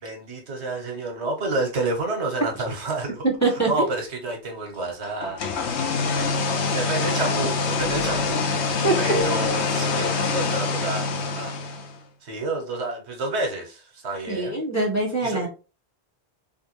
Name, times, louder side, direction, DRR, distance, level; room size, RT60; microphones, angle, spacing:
voice 1, 0.0-3.2 3.7-5.4 5.7-6.0 6.4-8.5 9.0-11.5 12.2-14.6 15.2-15.5, right 2 dB, 80° right, 1.3 m, -29 dB
voice 2, 3.2-3.7 8.8-9.0 14.3-15.5, right 2 dB, 15° left, 1.1 m, -23 dB
sound 1, 5.2-12.0, left 4 dB, 85° left, 1.0 m, -25 dB
3.6 x 2.6 x 2.9 m
omnidirectional pair, 1.1 m